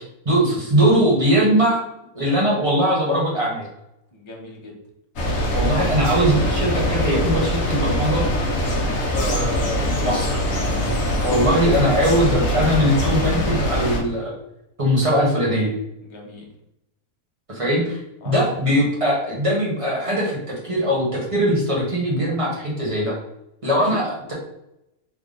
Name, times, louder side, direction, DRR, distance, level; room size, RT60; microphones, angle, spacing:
voice 1, 0.0-1.8 2.1-3.7 5.5-8.3 9.1-10.4 11.2-14.3 14.8-15.7 17.5-18.0 18.2-23.1 23.6-24.1, equal, 25° right, -5 dB, 1.0 m, -20 dB
voice 2, 4.1-4.8 10.8-11.0 16.0-16.5 18.2-18.4 23.7-24.3, left 2 dB, 45° left, -1 dB, 0.4 m, -38 dB
sound 1, 5.2-14.0, equal, 65° left, 1.2 m, -22 dB
3.6 x 2.2 x 3.8 m, 0.84 s
omnidirectional pair, 1.6 m